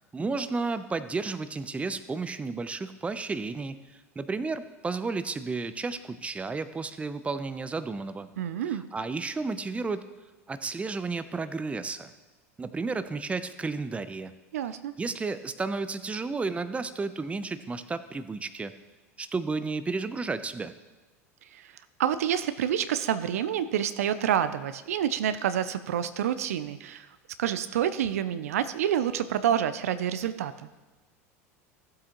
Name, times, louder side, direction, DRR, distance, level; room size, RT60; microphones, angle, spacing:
voice 1, 0.1-3.8 4.2-8.3 8.7-10.0 10.5-12.1 12.6-14.3 15.0-18.7 19.2-20.7, right 4 dB, 15° right, 12 dB, 0.6 m, -32 dB
voice 2, 8.4-8.8 14.5-14.9 21.5-21.7 22.0-27.1 27.4-30.7, right 9 dB, 75° right, 12 dB, 0.5 m, -28 dB
14.5 x 7.6 x 3.0 m, 1.2 s
hypercardioid pair, 85°, 8 cm